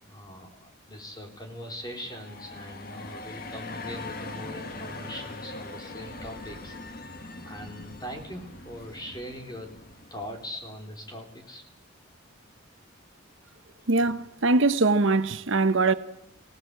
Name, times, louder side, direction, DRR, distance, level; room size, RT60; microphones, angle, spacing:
voice 1, 0.0-7.1 7.4-9.8 10.1-11.6, equal, 20° left, 3.7 m, -41 dB
sound 1, 1.8-10.5, left 2 dB, 45° left, 1.9 m, -41 dB
voice 2, 13.9-15.9, right 3 dB, 70° right, 0.9 m, -22 dB
23.5 x 17.5 x 8.1 m
head